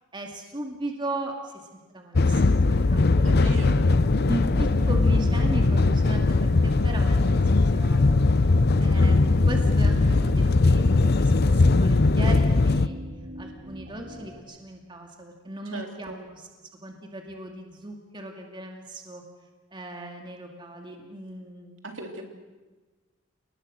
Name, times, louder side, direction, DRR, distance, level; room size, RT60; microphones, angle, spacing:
voice 1, 0.1-1.6 1.9-3.9 4.3-8.2 8.5-13.0 13.4-16.4 16.8-19.2 19.7-21.8, right 1 dB, 25° right, 2 dB, 2.4 m, -37 dB
sound 1, 2.2-12.9, left 3 dB, 50° left, 0.7 m, -20 dB
sound 2, 2.9-14.4, right 1 dB, 45° right, 2.7 m, -42 dB
voice 2, 3.2-3.8 15.7-16.2 21.8-22.3, right 2 dB, 65° right, 3 dB, 3.3 m, -37 dB
29.5 x 19.5 x 6.5 m, 1.3 s
head